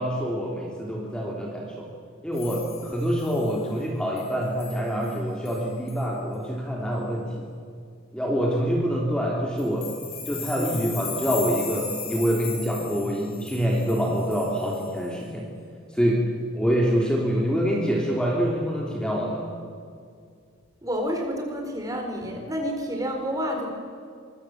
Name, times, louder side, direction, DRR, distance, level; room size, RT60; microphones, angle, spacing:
voice 1, 0.0-1.9 2.2-7.5 8.1-9.9 10.3-15.5 15.9-16.2 16.5-19.5, equal, 5° left, -2 dB, 3.3 m, -26 dB
sound 1, 2.3-3.5 4.2-4.3 4.6-4.8 5.0-5.2 5.5-5.6 5.9-6.0 9.6-15.0, left 6 dB, 85° left, 7.5 m, -38 dB
voice 2, 20.8-23.7, equal, 15° right, 2 dB, 4.5 m, -29 dB
25.0 x 23.5 x 7.6 m, 2.3 s
head